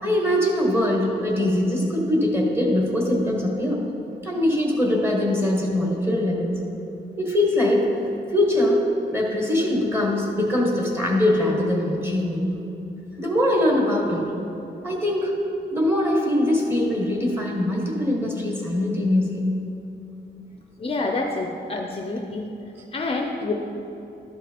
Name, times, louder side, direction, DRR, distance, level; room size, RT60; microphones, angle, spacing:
voice 1, 0.0-3.8 4.2-6.6 7.2-7.8 8.3-8.8 9.1-12.6 13.2-14.3 14.8-15.3 15.7-19.6, left 1 dB, 10° right, -1 dB, 1.4 m, -22 dB
voice 2, 20.8-22.5 22.9-23.5, left 3 dB, 30° left, 2 dB, 0.6 m, -27 dB
12.5 x 5.1 x 4.5 m, 3.0 s
wide cardioid pair, 160°, 19 cm